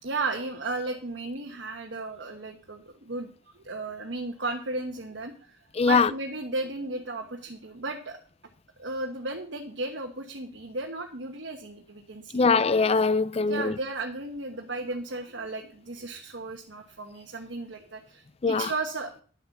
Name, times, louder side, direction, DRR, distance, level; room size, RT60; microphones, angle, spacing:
voice 1, 0.0-3.3 3.6-5.6 5.8-8.2 8.8-12.5 13.5-19.2, right 2 dB, 70° right, 1.3 m, -34 dB
voice 2, 5.8-6.1 12.3-13.7 18.4-18.7, left 4 dB, 35° left, 0.5 m, -22 dB
10.5 x 7.9 x 6.0 m
head